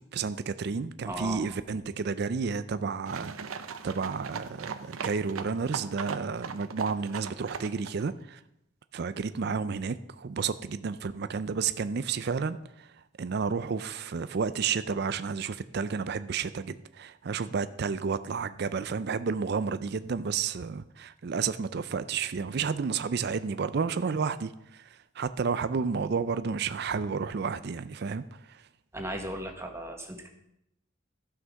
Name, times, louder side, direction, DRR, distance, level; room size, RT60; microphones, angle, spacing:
voice 1, 0.1-8.4 8.9-12.9 13.2-28.7, right 5 dB, 50° right, 13 dB, 0.4 m, -31 dB
voice 2, 1.1-1.4 1.7-1.8 28.9-30.3, right 1 dB, 15° right, 3 dB, 1.3 m, -36 dB
sound 1, 3.1-8.0, right 6 dB, 85° right, 0.7 m, -39 dB
12.5 x 5.9 x 6.4 m, 0.82 s
head